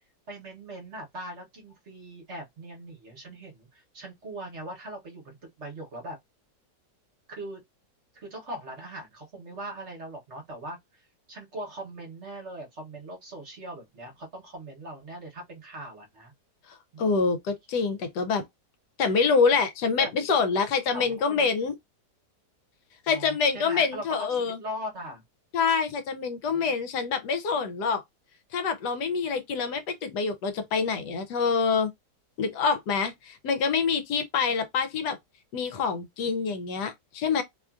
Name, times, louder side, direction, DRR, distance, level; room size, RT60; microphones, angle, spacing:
voice 1, 0.3-6.2 7.3-7.6 8.1-16.3 16.9-17.0 20.0-20.3 20.9-21.6 23.1-25.2 26.5-26.7 36.3-36.6, right 1 dB, 50° right, 1.1 m, -40 dB
voice 2, 16.7-18.4 19.0-21.7 23.1-24.6 25.5-28.0 28.5-31.9 32.4-35.2 35.5-37.4, left 5 dB, 75° left, 1.2 m, -26 dB
3.0 x 2.4 x 2.3 m
omnidirectional pair, 1.8 m